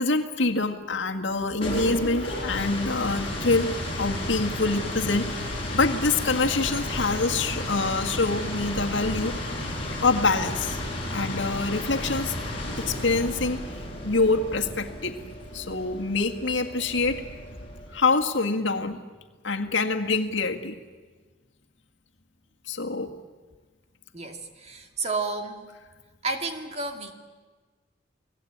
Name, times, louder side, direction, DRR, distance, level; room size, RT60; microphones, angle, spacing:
voice 1, 0.0-3.7 4.0-5.4 5.7-9.3 10.0-10.8 11.1-12.3 12.8-13.6 14.0-15.1 15.5-17.2 17.9-19.0 19.4-20.8 22.7-23.1, left 3 dB, 70° left, 4 dB, 1.8 m, -25 dB
sound 1, 1.3-18.0, left 1 dB, 30° left, 6.9 m, -33 dB
voice 2, 24.1-25.7 26.2-27.1, right 3 dB, 35° right, 5 dB, 2.1 m, -31 dB
29.5 x 18.5 x 8.7 m, 1.4 s
head